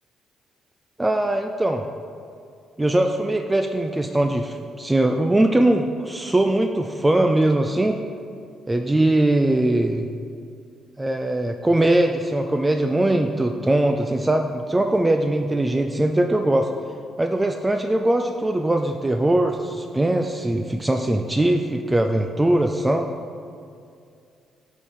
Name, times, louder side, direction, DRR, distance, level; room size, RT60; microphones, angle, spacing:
voice 1, 1.0-1.9 2.8-8.0 8.7-10.1 11.0-16.7 17.2-23.1, right 1 dB, 15° right, 5 dB, 0.3 m, -21 dB
10.5 x 3.6 x 4.3 m, 2.4 s
cardioid pair, 90°, 0 cm